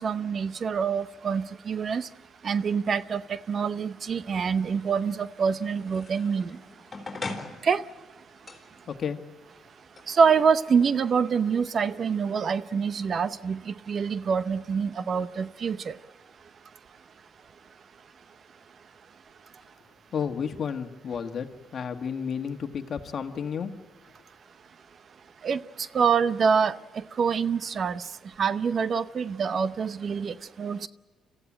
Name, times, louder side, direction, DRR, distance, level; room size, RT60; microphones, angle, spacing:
voice 1, 0.0-2.1 2.4-3.2 3.5-6.5 7.6-7.8 10.1-15.9 25.4-25.6 25.9-26.7 27.2-28.0 28.4-30.9, right 6 dB, 50° right, 0.7 m, -25 dB
sound 1, 4.2-12.4, left 3 dB, 25° left, 4.2 m, -44 dB
voice 2, 8.9-9.2 20.1-21.5 21.7-23.7, left 7 dB, 55° left, 1.6 m, -31 dB
26.0 x 15.0 x 8.8 m
cardioid pair, 90°, 0 cm